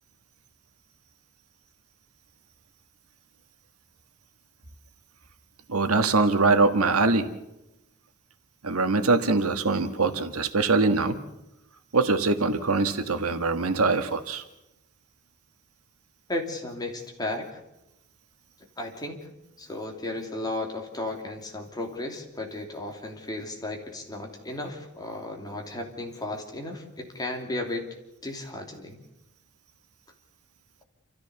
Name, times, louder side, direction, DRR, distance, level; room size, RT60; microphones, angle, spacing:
voice 1, 5.7-7.3 8.6-11.2 11.9-14.4, right 3 dB, 80° right, 9 dB, 1.6 m, -23 dB
voice 2, 16.3-17.6 18.8-19.2 19.6-27.9 28.2-29.0, left 2 dB, 20° left, 2 dB, 2.9 m, -34 dB
29.0 x 14.0 x 7.0 m, 0.91 s
head